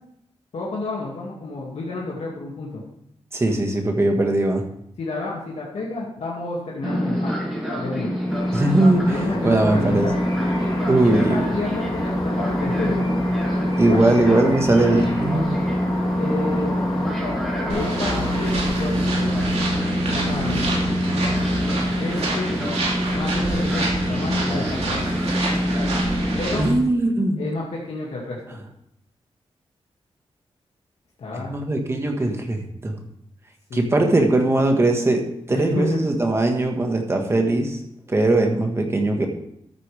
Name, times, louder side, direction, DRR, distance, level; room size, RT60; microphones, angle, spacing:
voice 1, 0.5-2.8 5.0-7.3 7.8-8.2 9.1-10.1 10.8-13.1 13.9-14.2 16.1-16.8 17.7-19.4 20.1-20.7 22.0-22.6 23.1-25.1 26.4-26.7 27.4-28.6 31.2-31.5 33.7-33.9 35.5-36.0, left 3 dB, 80° left, -4 dB, 2.3 m, -30 dB
voice 2, 3.3-4.6 8.5-10.1 10.9-11.5 13.8-15.6 26.6-27.5 31.3-33.0 33.7-37.8 38.1-39.3, right 2 dB, 25° right, 3 dB, 1.6 m, -20 dB
Fixed-wing aircraft airplane, 6.8-26.6, equal, ahead, 3.1 m, -25 dB
sound 1, 8.3-18.5, left 2 dB, 35° left, 3.2 m, -32 dB
sound 2, 17.7-26.7, right 2 dB, 80° right, 3.1 m, -28 dB
13.5 x 8.7 x 3.4 m, 0.75 s
wide cardioid pair, 175°, 11 cm